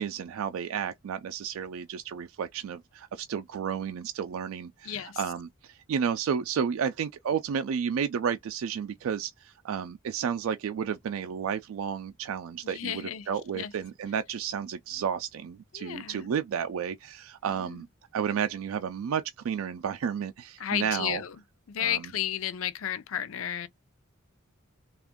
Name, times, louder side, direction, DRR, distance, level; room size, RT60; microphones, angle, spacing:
voice 1, 0.0-17.9 18.1-21.2 21.8-22.0, right 7 dB, 80° right, 0.3 m, -32 dB
voice 2, 4.8-5.2 12.6-13.7 15.7-16.3 17.5-17.9 20.6-21.4 21.7-23.7, left 10 dB, 75° left, 0.5 m, -33 dB
3.4 x 2.4 x 3.6 m
head